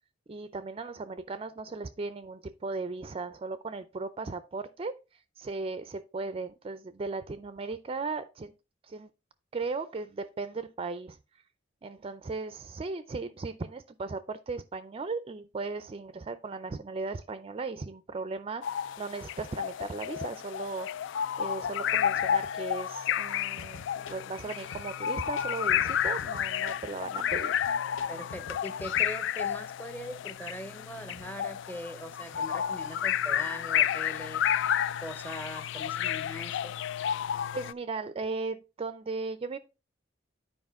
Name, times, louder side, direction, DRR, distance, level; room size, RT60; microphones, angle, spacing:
voice 1, 0.3-4.9 5.4-8.5 8.9-9.1 9.5-11.2 11.8-27.6 37.5-39.6, right 3 dB, 30° right, 0.4 m, -37 dB
sound 1, 18.6-37.7, left 9 dB, 65° left, 0.3 m, -31 dB
sound 2, 23.6-29.0, left 3 dB, 85° left, 0.8 m, -47 dB
voice 2, 28.1-34.4 35.0-36.7, equal, 10° left, 0.8 m, -41 dB
9.6 x 4.9 x 3.5 m
head